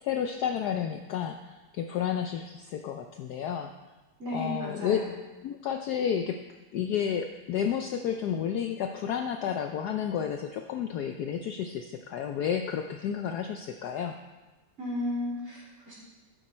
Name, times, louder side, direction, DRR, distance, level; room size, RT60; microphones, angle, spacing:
voice 1, 0.0-3.7 4.3-5.0 5.4-6.4 6.7-14.2, left 8 dB, 70° left, 6 dB, 1.0 m, -31 dB
voice 2, 4.2-5.0 14.8-15.9, left 1 dB, 35° right, -6 dB, 3.9 m, -34 dB
12.0 x 8.3 x 4.3 m, 1.2 s
omnidirectional pair, 2.1 m